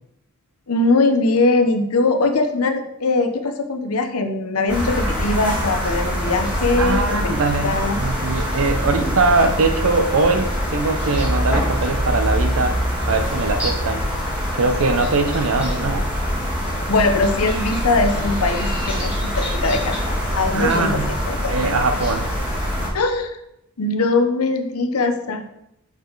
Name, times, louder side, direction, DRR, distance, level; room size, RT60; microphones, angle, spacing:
voice 1, 0.7-8.0 16.9-21.0 21.3-21.7 22.9-23.4 23.8-25.5, left 3 dB, 85° left, 7 dB, 0.8 m, -21 dB
sound 1, 4.7-22.9, equal, 5° right, 2.5 m, -24 dB
voice 2, 6.8-12.8 13.1-14.0 14.5-16.1 20.5-21.1 21.5-22.4, right 3 dB, 70° right, 7 dB, 0.7 m, -21 dB
6.5 x 5.2 x 3.9 m, 0.82 s
head